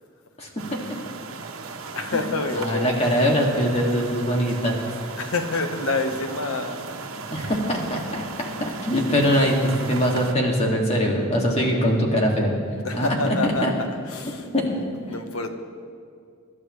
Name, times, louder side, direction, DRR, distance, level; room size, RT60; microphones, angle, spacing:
sound 1, 0.6-10.3, right 4 dB, 90° right, 1.2 m, -37 dB
voice 1, 2.0-2.9 5.2-6.8 12.8-14.5 15.1-15.5, left 3 dB, 90° left, 6 dB, 1.2 m, -27 dB
voice 2, 2.5-4.8 7.3-12.5 12.9-13.7 14.5-14.7, equal, 30° left, -1 dB, 2.2 m, -22 dB
25.0 x 12.0 x 3.3 m, 2.2 s
head